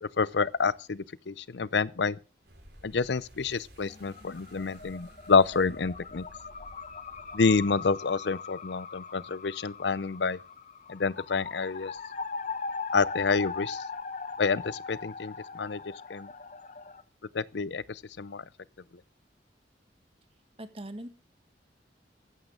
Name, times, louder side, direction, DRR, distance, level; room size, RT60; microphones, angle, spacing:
voice 1, 0.0-2.2 2.8-6.2 7.3-10.4 10.9-12.0 12.9-13.8 14.4-15.8 16.1-16.3 17.3-18.4, left 4 dB, 70° left, 0.6 m, -28 dB
sound 1, 2.4-7.9, equal, 65° right, 4.8 m, -54 dB
sound 2, 3.8-17.0, left 4 dB, 45° left, 1.1 m, -40 dB
voice 2, 20.6-21.1, right 1 dB, 35° right, 1.9 m, -40 dB
15.5 x 13.5 x 3.8 m
head